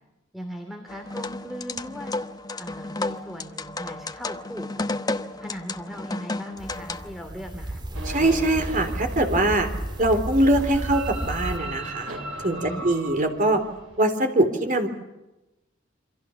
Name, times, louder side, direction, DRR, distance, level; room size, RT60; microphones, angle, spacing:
voice 1, 0.3-2.1 2.6-4.9 5.4-7.8 12.5-12.9, equal, ahead, 4 dB, 2.6 m, -38 dB
sound 1, 0.9-7.2, left 2 dB, 20° left, 0.9 m, -32 dB
sound 2, 6.6-11.6, right 1 dB, 25° right, 2.3 m, -33 dB
sound 3, 7.9-14.0, right 1 dB, 75° right, 3.4 m, -37 dB
voice 2, 8.1-9.7 10.0-13.6 14.0-14.9, right 1 dB, 45° right, 6 dB, 3.5 m, -22 dB
28.0 x 25.0 x 7.1 m, 1.0 s
head